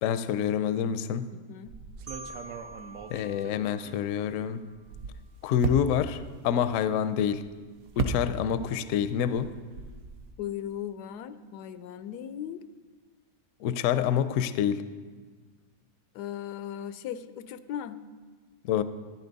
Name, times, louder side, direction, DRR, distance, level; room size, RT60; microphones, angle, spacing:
voice 1, 0.0-1.3 3.1-4.6 5.4-7.4 8.0-9.5 13.6-14.8 18.6-18.8, left 9 dB, 70° left, 13 dB, 0.8 m, -27 dB
voice 2, 1.3-1.7 10.4-12.6 16.1-18.0, left 10 dB, 90° left, 12 dB, 1.2 m, -37 dB
sound 1, 1.7-4.4 4.7-8.8 9.0-10.3, right 4 dB, 70° right, 1.1 m, -37 dB
Marimba xylophone, 2.1-4.9, right 2 dB, 35° right, 0.7 m, -47 dB
13.5 x 9.9 x 4.0 m, 1.4 s
omnidirectional pair, 1.7 m